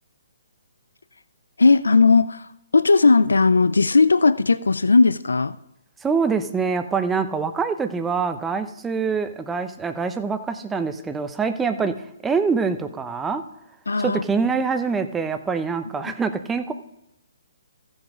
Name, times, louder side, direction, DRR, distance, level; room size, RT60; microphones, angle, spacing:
voice 1, 1.6-5.6 13.9-14.2, left 4 dB, 85° left, 16 dB, 0.4 m, -17 dB
voice 2, 6.0-11.9 12.2-13.4 14.0-16.7, right 5 dB, 10° right, 8 dB, 0.8 m, -24 dB
14.5 x 6.3 x 5.0 m, 0.84 s
hypercardioid pair, 140°, 0 cm